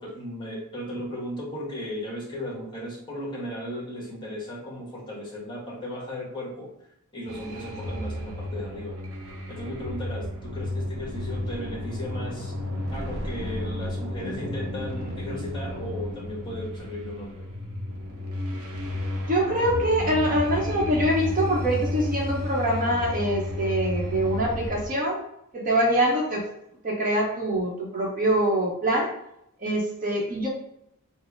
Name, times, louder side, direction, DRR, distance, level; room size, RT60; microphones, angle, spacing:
voice 1, 0.0-6.7 7.1-9.0 9.5-12.5 12.9-17.5, left 1 dB, 20° left, -4 dB, 1.3 m, -36 dB
sound 1, 7.3-24.9, left 1 dB, 65° right, 0.8 m, -32 dB
voice 2, 19.3-25.2 25.5-26.5 26.8-29.1 29.6-30.5, right 1 dB, 40° right, -1 dB, 0.8 m, -24 dB
4.3 x 2.0 x 4.5 m, 0.79 s
head